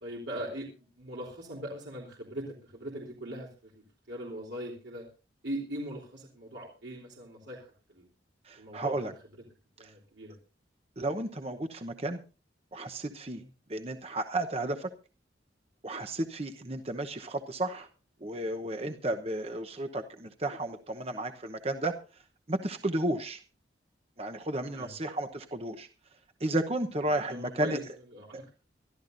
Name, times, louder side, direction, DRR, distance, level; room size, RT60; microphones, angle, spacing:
voice 1, 0.0-5.0 5.4-8.1 8.6-9.1 9.8-10.4 11.9-12.0 13.3-13.5 18.7-19.0 24.6-24.9 27.3-27.8 28.1-28.5, right 1 dB, 70° right, -3 dB, 3.4 m, -41 dB
voice 2, 8.5-9.1 9.8-9.9 11.0-12.2 12.7-13.4 13.7-14.9 15.8-17.9 18.2-21.9 22.5-23.4 24.2-25.9 26.4-27.8 28.3-28.4, right 1 dB, 30° right, 7 dB, 0.9 m, -33 dB
24.5 x 13.5 x 2.6 m, 0.33 s
head